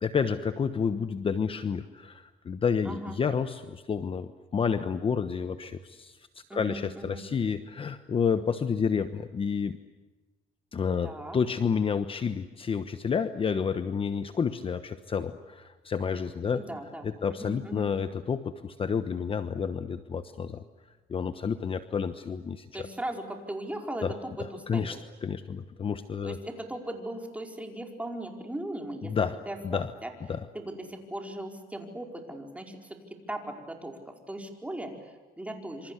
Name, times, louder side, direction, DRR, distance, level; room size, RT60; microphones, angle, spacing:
voice 1, 0.0-9.8 10.7-16.6 17.0-20.6 21.1-22.9 24.0-24.1 24.4-25.0 25.2-26.4 29.1-29.4 29.6-29.9 30.3-30.4, left 6 dB, 30° left, 10 dB, 1.1 m, -30 dB
voice 2, 2.8-3.2 6.5-7.2 11.0-11.4 16.5-17.9 22.7-25.0 26.2-30.1 30.5-35.9, right 1 dB, 10° right, 3 dB, 4.8 m, -38 dB
27.0 x 26.5 x 8.2 m, 1.3 s
cardioid pair, 110°, 17 cm